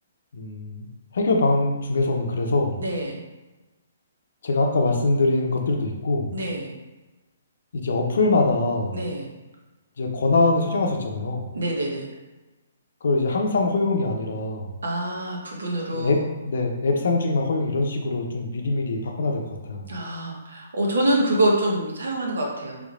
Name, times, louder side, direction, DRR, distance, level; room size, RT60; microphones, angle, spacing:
voice 1, 0.3-0.9 1.1-2.8 4.4-6.4 7.7-9.0 10.0-11.5 13.0-14.7 15.9-19.4 19.7-19.9, left 3 dB, 70° left, 2 dB, 0.6 m, -23 dB
voice 2, 2.8-3.2 6.3-6.8 8.9-9.3 11.5-12.1 14.8-16.1 19.9-22.8, right 1 dB, 80° right, -1 dB, 0.9 m, -25 dB
3.4 x 3.2 x 2.4 m, 1.1 s
hypercardioid pair, 150°, 0 cm